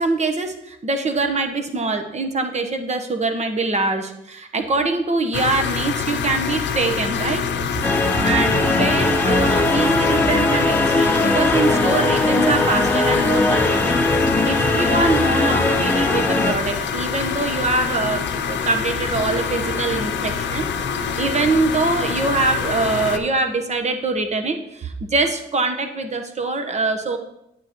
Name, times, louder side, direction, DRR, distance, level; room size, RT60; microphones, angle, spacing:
voice 1, 0.0-7.4 8.2-14.0 14.2-20.7 21.2-27.2, right 3 dB, 35° right, 6 dB, 1.1 m, -23 dB
sound 1, 5.3-23.2, left 6 dB, 65° left, 0.8 m, -25 dB
sound 2, 7.8-16.5, left 2 dB, 10° left, 0.7 m, -19 dB
8.9 x 8.4 x 3.1 m, 0.82 s
cardioid pair, 90°, 20 cm